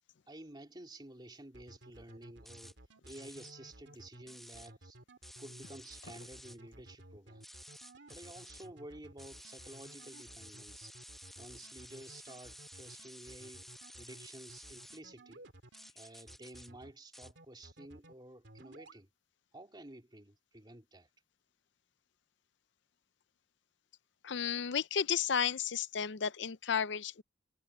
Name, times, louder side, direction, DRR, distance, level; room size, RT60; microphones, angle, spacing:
voice 1, 0.3-2.7 3.0-5.0 5.4-7.4 8.1-10.9 11.4-13.7 14.0-15.4 15.9-19.1 19.5-21.1, right 1 dB, 25° right, 3.1 m, -52 dB
sound 1, 1.5-15.9 16.3-16.9 17.2-18.1 18.4-19.0, right 1 dB, 60° right, 2.9 m, -56 dB
sound 2, 2.4-2.7 3.1-3.5 4.3-4.7 5.2-6.6 7.4-8.7 9.2-15.0 15.7-16.7 17.1-17.3, equal, ahead, 1.0 m, -53 dB
voice 2, 24.2-27.2, left 7 dB, 65° left, 0.5 m, -33 dB
head